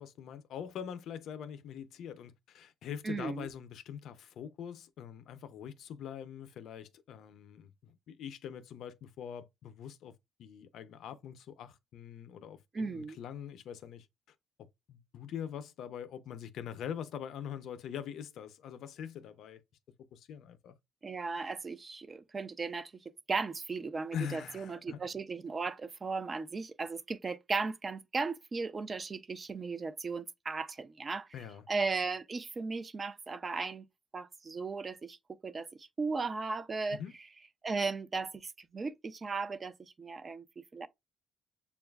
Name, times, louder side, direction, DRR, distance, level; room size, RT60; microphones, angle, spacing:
voice 1, 0.0-10.1 10.4-14.1 14.6-19.6 20.1-20.8 24.1-25.0 31.3-31.6 36.9-37.2, left 8 dB, 75° left, 0.5 m, -43 dB
voice 2, 3.0-3.5 12.7-13.2 21.0-23.0 23.3-31.3 31.7-33.9 34.1-37.0 37.6-40.9, right 4 dB, 35° right, 0.4 m, -36 dB
6.9 x 2.3 x 2.2 m
cardioid pair, 90°, 0 cm